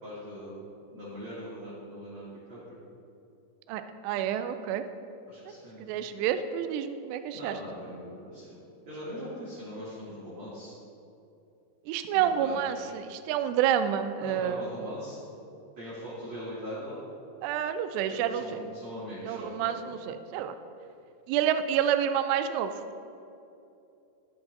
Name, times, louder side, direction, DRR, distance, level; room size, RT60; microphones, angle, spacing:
voice 1, 0.0-0.6 0.9-2.8 5.3-5.8 7.3-10.8 12.1-12.9 14.2-15.2 15.8-17.0 18.1-20.1, equal, 45° right, -11 dB, 3.2 m, -41 dB
voice 2, 3.7-4.8 5.5-5.6 5.8-7.6 11.9-14.7 17.4-18.6 19.2-20.5 21.3-22.7, right 9 dB, 85° right, 9 dB, 2.5 m, -29 dB
13.5 x 10.5 x 2.7 m, 2.7 s
omnidirectional pair, 5.1 m